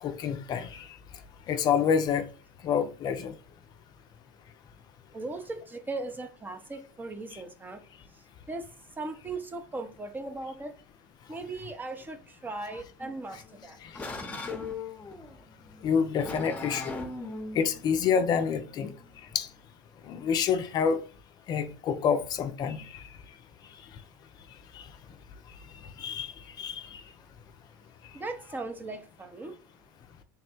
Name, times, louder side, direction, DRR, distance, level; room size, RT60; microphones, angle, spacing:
voice 1, 0.0-0.9 1.5-2.2 2.6-3.3 7.3-7.4 13.8-13.9 15.8-16.9 17.5-18.9 19.3-19.5 20.1-21.0 21.5-23.0 24.8-24.9 26.0-27.0, left 7 dB, 45° left, 0.5 m, -28 dB
voice 2, 5.1-7.8 8.1-8.7 9.0-10.8 11.3-13.8 28.1-29.5, right 2 dB, 20° right, 0.6 m, -38 dB
sound 1, 13.0-19.6, left 3 dB, 15° left, 0.8 m, -40 dB
3.5 x 2.2 x 4.3 m
hypercardioid pair, 90°, 10 cm